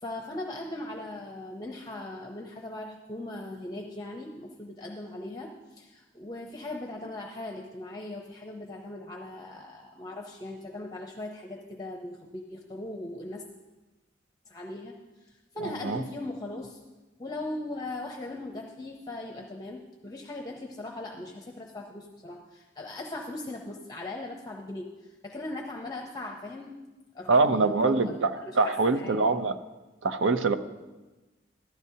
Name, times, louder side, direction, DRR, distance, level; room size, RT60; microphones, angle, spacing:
voice 1, 0.0-13.4 14.5-14.9 15.2-16.8 17.2-26.7 27.1-29.3, left 2 dB, 20° left, 1 dB, 0.7 m, -39 dB
voice 2, 27.3-28.3 28.6-29.5 30.0-30.5, right 3 dB, 85° right, 10 dB, 0.6 m, -23 dB
14.5 x 12.0 x 2.8 m, 1.2 s
head